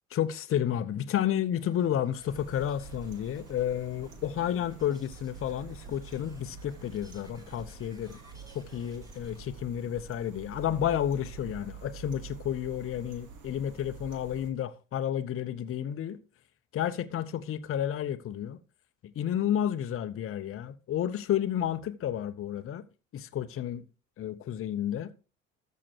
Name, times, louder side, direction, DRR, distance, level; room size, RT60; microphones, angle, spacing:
voice 1, 0.1-8.2 8.5-16.2 16.7-18.6 19.0-22.8 23.1-23.8 24.2-25.1, left 10 dB, 35° left, 0.9 m, -31 dB
sound 1, 1.6-9.5, right 1 dB, 10° right, 3.8 m, -56 dB
sound 2, 2.3-14.5, right 6 dB, 50° right, 2.2 m, -47 dB
13.5 x 6.4 x 4.6 m
figure-of-eight pair, 60°, 40 cm